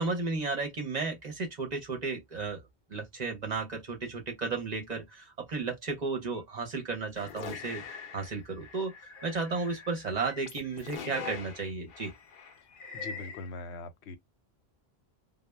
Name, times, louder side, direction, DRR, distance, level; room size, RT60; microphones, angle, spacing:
voice 1, 0.0-2.6 2.9-8.9 9.2-12.1, right 4 dB, 45° right, 0.7 m, -34 dB
sound 1, 7.2-13.5, left 6 dB, 60° left, 0.7 m, -43 dB
voice 2, 12.9-14.2, left 3 dB, 85° left, 0.9 m, -41 dB
2.1 x 2.0 x 3.2 m
omnidirectional pair, 1.1 m